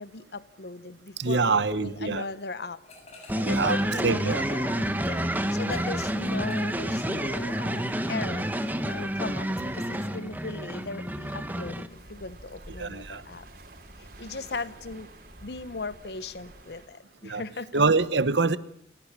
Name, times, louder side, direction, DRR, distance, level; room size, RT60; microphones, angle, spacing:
voice 1, 0.0-2.8 3.2-13.5 14.0-15.1 15.4-17.8, left 3 dB, 65° left, 0.9 m, -38 dB
voice 2, 1.2-2.2 3.4-4.5 5.7-5.8 12.8-13.2 17.2-17.4 17.7-18.6, right 4 dB, 85° right, 1.0 m, -25 dB
sound 1, 2.8-3.6 3.9-7.7, left 1 dB, 35° left, 7.6 m, -51 dB
sound 2, 3.3-11.9, equal, 10° right, 1.7 m, -29 dB
sound 3, 11.9-16.9, right 1 dB, 55° right, 5.0 m, -48 dB
28.5 x 17.0 x 8.7 m
head